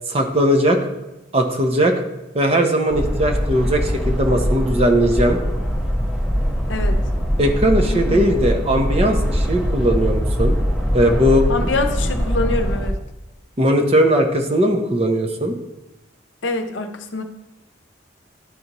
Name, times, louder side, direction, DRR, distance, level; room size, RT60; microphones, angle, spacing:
voice 1, 0.1-0.8 1.3-1.9 2.3-5.4 7.4-10.6 10.9-11.5 13.6-15.6, equal, 30° right, 3 dB, 0.6 m, -18 dB
sound 1, 2.9-12.9, equal, ahead, 1.0 m, -22 dB
voice 2, 11.5-13.0 16.4-17.2, left 2 dB, 70° left, 6 dB, 0.7 m, -25 dB
11.0 x 4.0 x 2.9 m, 1.0 s
head